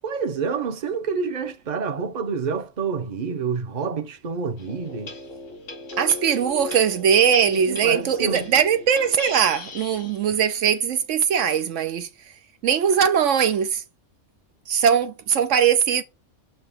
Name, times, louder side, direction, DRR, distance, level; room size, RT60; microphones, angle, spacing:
voice 1, 0.0-5.2 7.5-8.5, right 5 dB, 40° right, 0.9 m, -28 dB
sound 1, 4.6-10.3, left 2 dB, 75° left, 2.0 m, -37 dB
voice 2, 6.0-12.1 12.6-13.8 14.7-16.0, right 7 dB, 75° right, 1.0 m, -20 dB
7.7 x 2.9 x 5.6 m
omnidirectional pair, 1.3 m